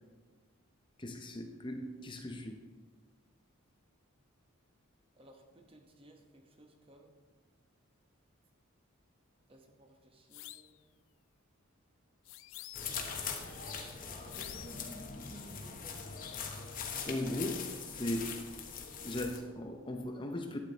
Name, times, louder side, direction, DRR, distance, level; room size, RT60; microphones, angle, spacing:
voice 1, 1.0-2.6 17.0-18.4 19.0-20.6, left 1 dB, 25° left, 4 dB, 0.7 m, -38 dB
voice 2, 5.2-7.1 9.5-10.8 14.2-16.3, right 1 dB, 25° right, 3 dB, 1.0 m, -55 dB
sound 1, 10.3-10.8 12.3-13.1 14.3-14.9, left 15 dB, 65° left, 0.3 m, -49 dB
sound 2, 12.7-19.4, left 6 dB, 40° left, 1.2 m, -42 dB
12.0 x 8.2 x 4.0 m, 1.4 s
head